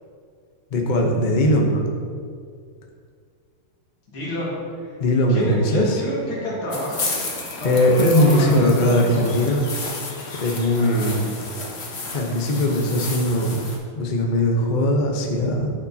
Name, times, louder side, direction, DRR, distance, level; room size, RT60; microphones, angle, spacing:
voice 1, 0.7-1.8 5.0-6.0 7.6-9.7 10.4-11.3 12.1-13.6 14.0-15.7, left 1 dB, 60° left, 1 dB, 0.5 m, -19 dB
voice 2, 4.1-4.6 5.3-7.2 7.5-9.6 10.7-11.2, equal, 80° left, -6 dB, 2.9 m, -29 dB
sound 1, 6.7-13.8, left 3 dB, 40° left, 1.0 m, -32 dB
10.0 x 7.0 x 2.8 m, 2.2 s
omnidirectional pair, 2.3 m